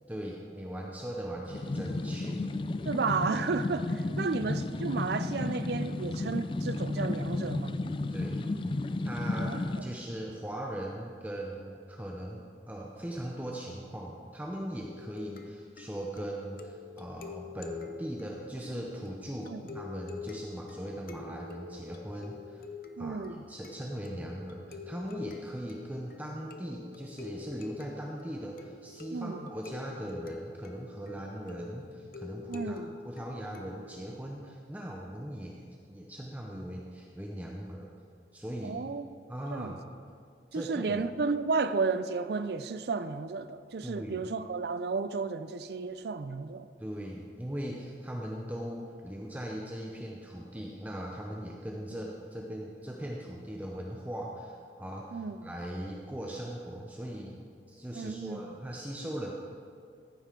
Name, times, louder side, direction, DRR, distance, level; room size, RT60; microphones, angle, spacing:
voice 1, 0.1-2.4 8.1-8.4 9.0-22.7 23.0-35.6 35.9-37.9 38.3-38.8 39.3-39.8 40.5-41.1 43.8-44.3 46.8-59.3, right 1 dB, 10° right, 0.6 m, -39 dB
sound 1, 1.5-9.8, left 2 dB, 30° left, 0.3 m, -33 dB
voice 2, 2.9-7.8 9.3-9.9 19.5-19.6 23.0-23.4 29.1-29.4 32.5-32.9 38.6-39.1 39.5-39.7 40.5-46.7 55.1-55.4 57.9-58.4, right 4 dB, 65° right, 0.4 m, -33 dB
sound 2, 14.8-34.0, left 5 dB, 50° left, 0.7 m, -46 dB
14.5 x 8.9 x 3.8 m
head